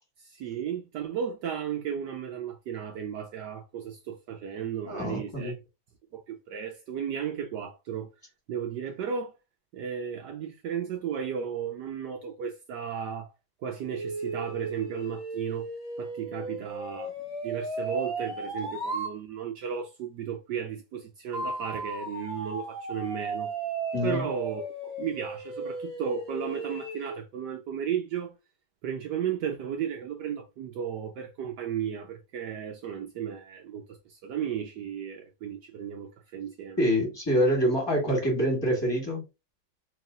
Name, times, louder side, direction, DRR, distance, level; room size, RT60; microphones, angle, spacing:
voice 1, 0.2-5.5 6.1-8.1 8.5-9.3 9.7-13.3 13.6-15.7 16.0-17.2 17.4-23.5 24.0-28.3 28.8-36.8, right 8 dB, 75° right, 1.0 m, -34 dB
voice 2, 4.9-5.5 23.9-24.2 36.8-39.2, equal, 15° left, 1.6 m, -26 dB
sound 1, 13.9-19.1 21.3-27.2, right 2 dB, 35° right, 1.2 m, -35 dB
3.1 x 3.1 x 3.6 m
omnidirectional pair, 2.3 m